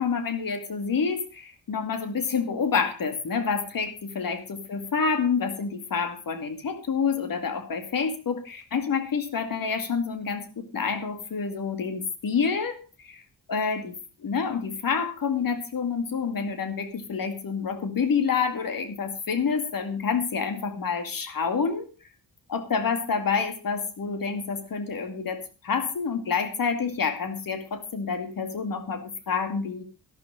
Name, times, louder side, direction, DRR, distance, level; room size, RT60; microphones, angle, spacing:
voice 1, 0.0-13.2 13.5-13.9 14.2-21.9 22.5-29.8, left 5 dB, 65° left, 8 dB, 2.4 m, -28 dB
12.5 x 12.0 x 5.0 m, 0.32 s
wide cardioid pair, 155°, 37 cm